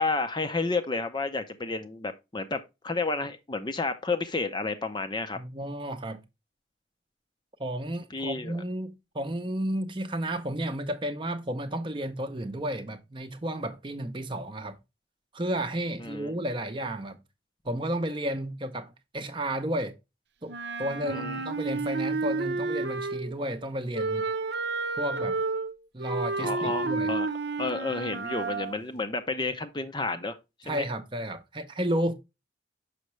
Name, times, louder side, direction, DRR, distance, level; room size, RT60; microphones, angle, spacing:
voice 1, 0.0-2.6 2.8-5.4 8.1-8.6 16.0-16.3 21.1-21.4 26.4-27.3 27.6-30.4 30.7-30.9, left 3 dB, 25° left, 0.5 m, -31 dB
voice 2, 5.3-6.2 7.6-14.8 15.3-17.2 17.6-19.9 20.4-24.2 25.0-25.4 25.9-27.1 30.6-32.1, right 1 dB, 25° right, 0.7 m, -32 dB
Wind instrument woodwind instrument, 20.5-23.4 23.9-28.8, right 3 dB, 65° right, 0.7 m, -31 dB
6.4 x 5.7 x 3.1 m
head